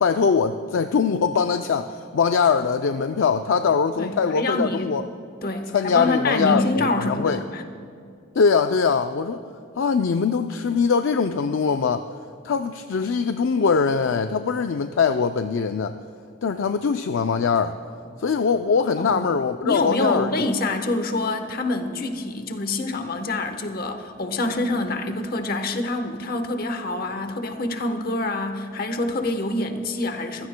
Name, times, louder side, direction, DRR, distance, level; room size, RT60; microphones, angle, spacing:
voice 1, 0.0-5.1 5.7-7.4 8.4-9.4 9.8-12.1 12.4-15.9 16.4-17.8 18.2-20.5, left 5 dB, 75° left, 8 dB, 0.4 m, -22 dB
voice 2, 4.0-4.9 5.4-7.6 19.0-19.2 19.6-30.5, left 2 dB, 45° left, 7 dB, 1.0 m, -26 dB
23.5 x 15.5 x 2.2 m, 2.4 s
head